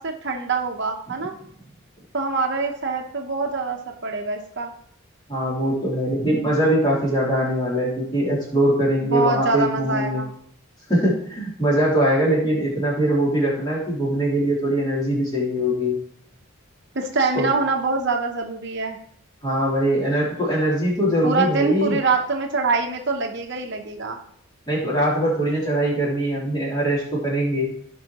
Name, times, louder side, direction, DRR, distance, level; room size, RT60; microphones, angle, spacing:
voice 1, 0.0-1.3 2.1-4.7 9.1-10.3 16.9-19.0 21.2-24.2, right 4 dB, 55° right, 3 dB, 0.9 m, -24 dB
voice 2, 5.3-10.2 10.9-16.0 17.3-17.5 19.4-22.0 24.7-27.6, right 1 dB, 20° left, -6 dB, 3.2 m, -22 dB
16.0 x 5.5 x 3.0 m, 0.65 s
head